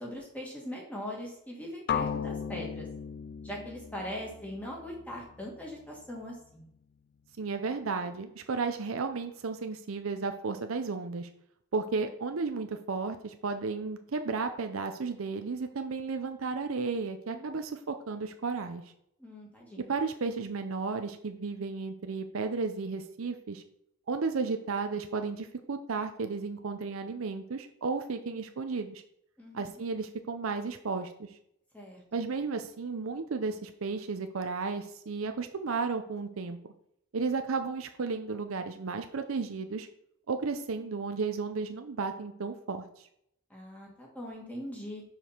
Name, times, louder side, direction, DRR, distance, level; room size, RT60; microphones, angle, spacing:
voice 1, 0.0-2.9 3.4-6.7 17.3-17.6 19.2-19.9 29.4-29.7 31.7-32.0 43.5-45.0, left 1 dB, 5° left, -2 dB, 1.9 m, -41 dB
sound 1, 1.9-5.8, left 7 dB, 50° left, 0.3 m, -36 dB
voice 2, 7.4-11.3 11.7-18.8 19.8-23.6 24.1-29.0 29.5-31.4 32.1-36.7 37.1-39.9 40.3-43.1, right 4 dB, 85° right, 7 dB, 0.6 m, -33 dB
5.1 x 4.7 x 5.7 m, 0.74 s
head